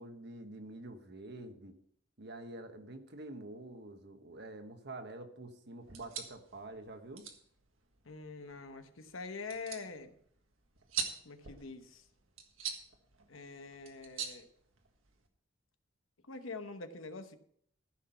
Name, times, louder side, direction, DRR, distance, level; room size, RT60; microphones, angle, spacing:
voice 1, 0.0-1.8 2.2-7.2, right 2 dB, 55° right, 7 dB, 1.3 m, -47 dB
sound 1, 5.8-15.3, right 7 dB, 75° right, 1.6 m, -45 dB
voice 2, 8.0-10.1 11.2-12.1 13.3-14.5 16.3-17.4, left 4 dB, 75° left, 8 dB, 1.0 m, -45 dB
14.5 x 6.1 x 5.7 m, 0.65 s
head